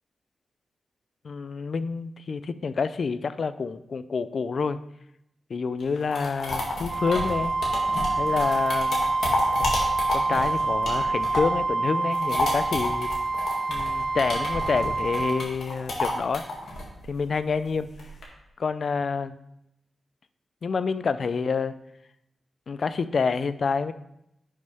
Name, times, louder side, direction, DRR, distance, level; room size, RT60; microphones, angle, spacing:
voice 1, 1.2-4.8 5.5-7.5 8.0-9.0 10.1-13.1 13.7-16.4 17.1-17.9 18.6-19.4 20.6-21.7 22.7-23.9, left 5 dB, 55° left, 14 dB, 0.4 m, -28 dB
sound 1, 5.8-11.6 11.9-18.2, left 2 dB, 80° left, 2.2 m, -30 dB
Wind instrument woodwind instrument, 6.9-15.4, right 3 dB, 40° right, 0.7 m, -27 dB
11.0 x 6.6 x 3.5 m, 0.83 s
wide cardioid pair, 125°, 0 cm